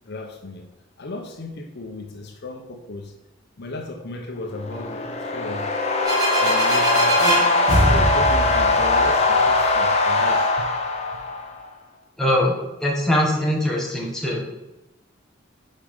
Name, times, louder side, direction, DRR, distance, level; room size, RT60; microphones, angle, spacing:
voice 1, 0.1-0.7 1.0-3.1 3.6-6.1 6.4-7.2 7.7-10.7 11.1-11.2, left 2 dB, 60° left, 3 dB, 0.8 m, -35 dB
sound 1, 4.5-11.6, left 3 dB, 35° left, 0.9 m, -21 dB
sound 2, 6.0-9.7, right 1 dB, 20° right, 2.3 m, -22 dB
voice 2, 12.2-14.7, left 1 dB, 5° left, -4 dB, 1.5 m, -22 dB
5.4 x 5.1 x 5.5 m, 0.96 s
head